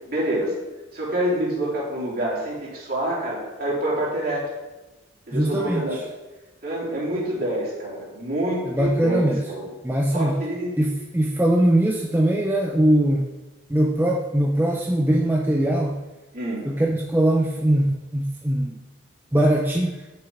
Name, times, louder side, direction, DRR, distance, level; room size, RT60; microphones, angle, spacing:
voice 1, 0.1-0.5 0.9-4.5 5.3-6.0 6.6-9.7 10.1-10.8 16.3-16.6, right 1 dB, 50° right, -5 dB, 3.4 m, -27 dB
voice 2, 5.3-5.8 8.6-9.4 9.8-10.4 10.8-13.2 13.7-16.0 16.6-17.9 18.1-18.8 19.3-20.0, right 1 dB, 10° right, 0 dB, 0.6 m, -21 dB
6.7 x 6.3 x 7.2 m, 1.1 s
head